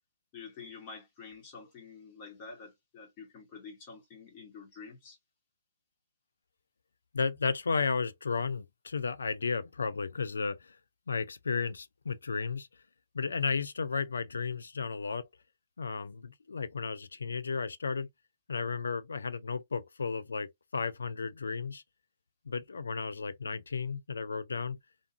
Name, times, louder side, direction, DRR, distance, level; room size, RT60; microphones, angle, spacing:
voice 1, 0.3-5.2, left 5 dB, 35° left, 1.1 m, -48 dB
voice 2, 7.1-10.8 11.1-12.7 13.1-15.3 15.8-18.1 18.5-21.8 22.5-24.8, left 5 dB, 75° left, 0.4 m, -33 dB
2.5 x 2.3 x 2.5 m
figure-of-eight pair, 130°, 0 cm